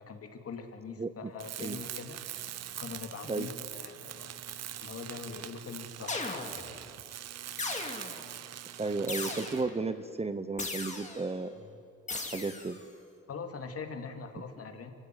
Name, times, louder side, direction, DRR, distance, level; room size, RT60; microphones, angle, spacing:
voice 1, 0.0-2.2 2.8-4.3 4.8-6.6 11.5-11.7 13.3-14.9, left 5 dB, 50° left, 6 dB, 2.4 m, -42 dB
Tools, 1.4-9.8, right 11 dB, 55° right, 0.8 m, -43 dB
sound 1, 6.1-6.8 7.6-8.3 9.1-9.8 10.6-11.3 12.1-12.8, left 3 dB, 25° left, 2.8 m, -37 dB
voice 2, 8.8-11.5 12.3-12.8, right 3 dB, 20° right, 12 dB, 0.9 m, -33 dB
24.5 x 15.5 x 9.2 m, 2.6 s
cardioid pair, 90°, 30 cm